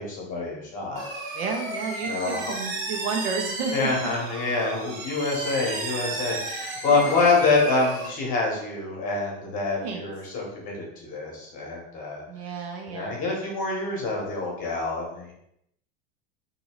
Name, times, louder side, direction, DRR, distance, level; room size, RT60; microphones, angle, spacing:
voice 1, 0.0-1.3 2.0-2.5 3.7-12.2 12.9-15.3, left 3 dB, 30° left, -1 dB, 0.9 m, -26 dB
sound 1, 1.0-8.1, right 2 dB, 65° right, 1.3 m, -34 dB
voice 2, 1.3-3.9 6.9-7.4 9.8-10.0 12.3-13.2, right 5 dB, 80° right, 2 dB, 1.0 m, -32 dB
2.7 x 2.7 x 4.3 m, 0.77 s
supercardioid pair, 160°, 29 cm